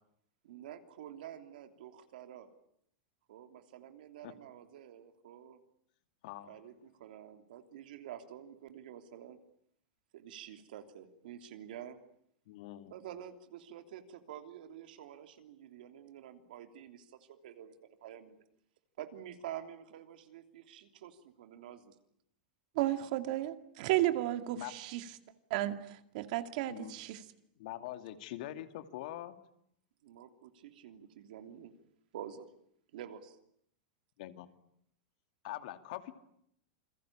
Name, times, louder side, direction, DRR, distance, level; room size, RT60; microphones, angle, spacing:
voice 1, 0.4-2.5 3.3-5.6 6.5-9.4 10.1-12.0 12.9-17.7 18.0-18.4 19.0-21.9 30.0-31.7 32.1-32.5 32.9-33.4, right 10 dB, 75° right, 3.2 m, -48 dB
voice 2, 6.2-6.5 12.5-12.9 24.5-24.7 26.7-26.9 27.6-29.3 34.2-34.5 35.4-36.1, left 14 dB, 60° left, 2.4 m, -43 dB
voice 3, 22.8-25.0 25.5-27.2, right 15 dB, 55° right, 2.2 m, -33 dB
28.5 x 22.5 x 8.7 m
supercardioid pair, 160°, 5 cm